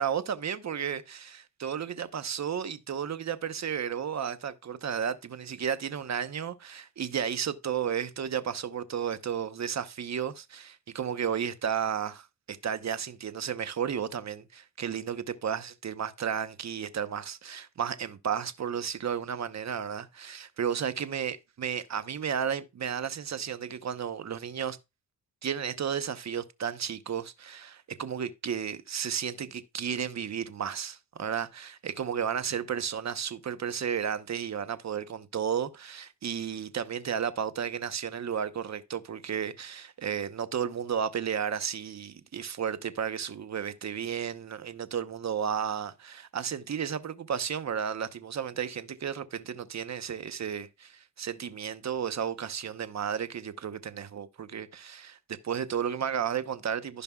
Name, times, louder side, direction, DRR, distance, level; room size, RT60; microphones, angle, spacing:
voice 1, 0.0-24.8 25.4-55.2 55.4-57.0, right 8 dB, 45° right, 1.0 m, -33 dB
15.5 x 5.3 x 2.4 m
supercardioid pair, 65°, 39 cm